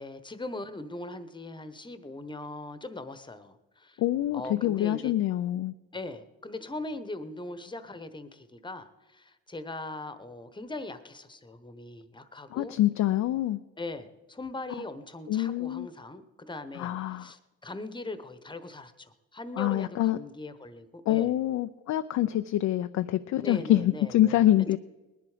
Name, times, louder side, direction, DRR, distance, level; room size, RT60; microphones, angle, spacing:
voice 1, 0.0-4.0 4.3-5.1 5.9-12.8 13.8-21.3 23.4-24.4, left 2 dB, 15° left, 12 dB, 1.1 m, -40 dB
voice 2, 4.0-5.7 12.5-13.6 15.3-15.9 16.7-17.3 19.6-20.2 21.1-24.8, left 13 dB, 70° left, 9 dB, 0.5 m, -26 dB
19.5 x 11.0 x 5.0 m, 1.1 s
cardioid pair, 80°, 29 cm